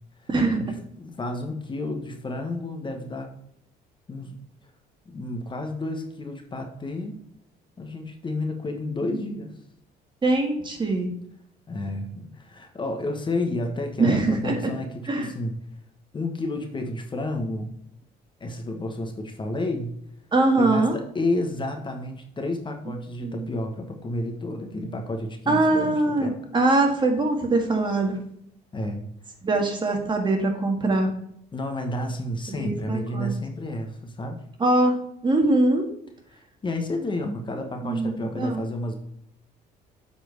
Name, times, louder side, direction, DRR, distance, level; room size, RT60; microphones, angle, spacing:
voice 1, 0.3-0.6 9.0-9.2 10.2-11.1 14.0-14.7 15.1-15.3 20.3-21.0 23.2-23.5 25.5-28.2 29.4-31.2 32.5-33.3 34.6-35.0 35.2-35.9 37.8-38.6, right 2 dB, 30° right, 3 dB, 1.6 m, -22 dB
voice 2, 1.0-3.3 4.1-4.4 5.1-7.2 7.8-9.5 11.7-15.5 16.1-17.8 18.4-19.9 20.6-26.4 28.7-29.1 31.5-34.4 36.3-38.9, left 2 dB, 30° left, 4 dB, 1.3 m, -31 dB
7.6 x 4.4 x 5.3 m, 0.74 s
cardioid pair, 110°, 17 cm